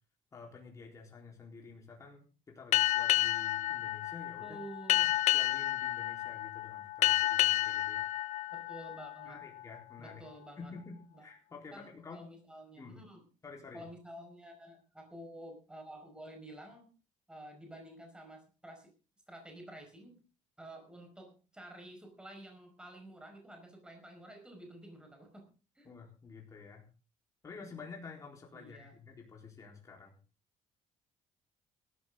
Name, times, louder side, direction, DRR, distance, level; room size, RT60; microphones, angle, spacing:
voice 1, 0.3-4.6 5.0-5.1 5.3-8.1 9.2-10.2 10.6-12.3 12.8-13.0 13.4-13.8 25.8-26.9 27.4-30.2, left 4 dB, 25° left, -1 dB, 4.0 m, -50 dB
Boat Water vehicle, 2.7-9.8, left 16 dB, 60° left, 0.9 m, -31 dB
voice 2, 4.4-5.2 8.5-9.4 10.0-10.7 11.1-11.2 11.7-13.2 13.7-16.8 17.3-18.9 19.3-20.2 20.6-25.5 25.7-25.9 28.5-28.9, right 1 dB, 5° right, 3 dB, 5.3 m, -50 dB
17.5 x 13.5 x 3.8 m, 0.35 s
cardioid pair, 155°, 13 cm